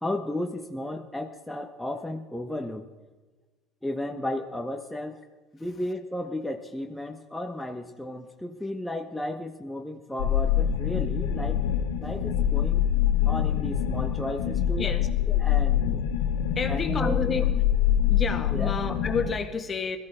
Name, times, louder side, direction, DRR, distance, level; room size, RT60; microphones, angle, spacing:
voice 1, 0.0-2.9 3.8-5.2 5.6-11.6 11.9-12.9 13.3-14.9 15.3-16.0 16.7-17.2 18.5-18.7, left 1 dB, 5° left, 3 dB, 1.3 m, -34 dB
sound 1, 10.2-19.4, left 10 dB, 80° left, 1.2 m, -25 dB
voice 2, 16.6-17.5 18.1-20.0, left 5 dB, 35° left, 6 dB, 1.9 m, -30 dB
21.0 x 14.5 x 3.8 m, 1.3 s
hypercardioid pair, 70°, 0 cm